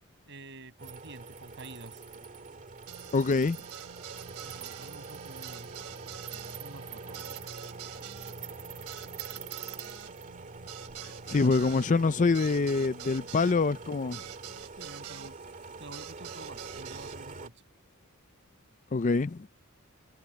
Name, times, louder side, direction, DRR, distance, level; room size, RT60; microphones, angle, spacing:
voice 1, 0.3-2.0 4.4-5.7 6.6-7.4 13.3-13.6 14.8-15.4 15.8-17.5, right 2 dB, 55° right, 6.3 m, -48 dB
sound 1, 0.8-17.5, right 4 dB, 35° right, 2.2 m, -44 dB
sound 2, 2.9-15.3 15.9-17.2, right 10 dB, 90° right, 1.1 m, -46 dB
voice 2, 3.1-3.6 11.3-14.2 18.9-19.5, left 4 dB, 35° left, 0.4 m, -25 dB
head